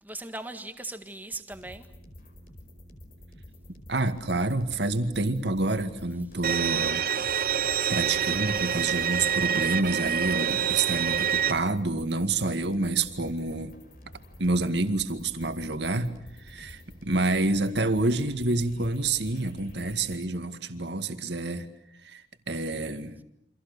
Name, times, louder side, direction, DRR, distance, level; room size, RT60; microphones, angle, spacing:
voice 1, 0.0-1.9, right 2 dB, 10° right, 1.8 m, -40 dB
sound 1, 1.5-20.2, left 1 dB, 50° left, 5.0 m, -49 dB
voice 2, 3.9-7.0 7.6-13.7 14.4-16.1 16.4-21.7 22.0-23.2, right 2 dB, 75° right, 2.1 m, -28 dB
Bowed string instrument, 6.4-11.5, right 8 dB, 55° right, 1.2 m, -26 dB
29.0 x 26.0 x 6.9 m
head